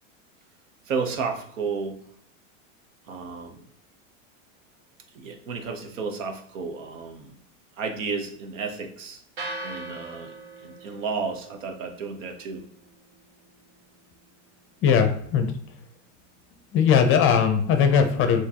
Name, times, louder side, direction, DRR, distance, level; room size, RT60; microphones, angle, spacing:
voice 1, 0.9-2.0 3.1-3.6 5.1-7.3 7.8-9.2 9.6-10.3 10.6-12.6, right 5 dB, 90° right, 5 dB, 1.0 m, -32 dB
sound 1, 9.4-17.5, right 2 dB, 50° right, 1.5 m, -44 dB
voice 2, 14.8-15.5 16.7-18.5, left 7 dB, 35° left, 6 dB, 0.6 m, -19 dB
5.9 x 3.1 x 2.8 m, 0.66 s
supercardioid pair, 130°, 38 cm